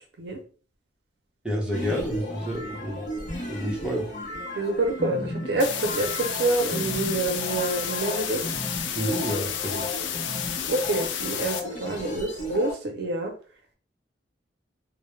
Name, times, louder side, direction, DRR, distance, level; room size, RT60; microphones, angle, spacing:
voice 1, 1.4-3.1 3.5-4.1 8.9-9.9, equal, 5° right, -3 dB, 0.7 m, -29 dB
sound 1, 1.7-12.7, left 1 dB, 45° left, 0.7 m, -35 dB
voice 2, 4.6-8.4 9.7-9.8 10.7-13.3, right 2 dB, 65° right, 4 dB, 0.5 m, -27 dB
sound 2, 5.6-11.6, left 9 dB, 85° left, 0.3 m, -31 dB
2.2 x 2.0 x 3.0 m, 0.39 s
head